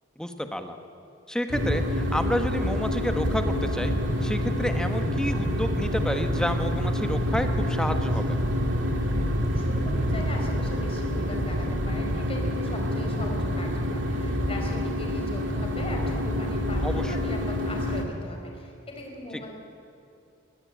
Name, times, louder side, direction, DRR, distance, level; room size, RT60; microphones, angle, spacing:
voice 1, 0.2-0.8 1.3-3.9 4.2-8.4 16.8-17.1, equal, 5° left, 6 dB, 1.5 m, -30 dB
sound 1, 1.5-18.0, equal, 80° right, 2.7 m, -27 dB
voice 2, 9.5-19.5, left 1 dB, 30° left, 1 dB, 4.6 m, -39 dB
22.0 x 19.0 x 8.7 m, 2.7 s
head